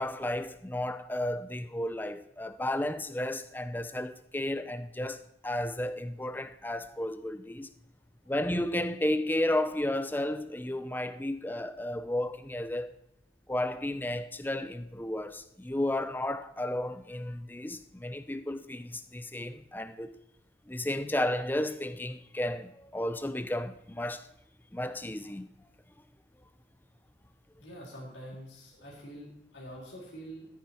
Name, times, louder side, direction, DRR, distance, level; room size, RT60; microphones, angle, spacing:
voice 1, 0.0-7.7 8.3-12.9 13.5-20.1 20.7-24.3 24.7-25.5, left 1 dB, 10° left, 0.5 m, -33 dB
voice 2, 27.6-30.5, equal, 70° left, 3.9 m, -45 dB
14.5 x 9.6 x 4.4 m
head